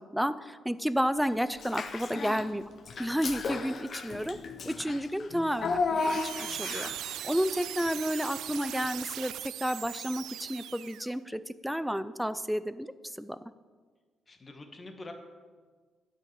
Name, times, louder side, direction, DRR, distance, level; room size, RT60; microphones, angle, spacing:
voice 1, 0.1-2.6 3.0-4.4 4.7-6.9 7.2-12.9 13.2-13.4, equal, ahead, 14 dB, 0.5 m, -31 dB
Child speech kid speaking / Bathtub (filling or washing), 1.5-2.5 2.8-7.1, left 4 dB, 50° left, 1.0 m, -34 dB
sound 1, 6.0-11.2, right 11 dB, 80° right, 0.3 m, -39 dB
voice 2, 14.3-15.1, left 2 dB, 30° left, 4 dB, 1.8 m, -45 dB
12.0 x 5.5 x 9.0 m, 1.5 s
cardioid pair, 90°, 0 cm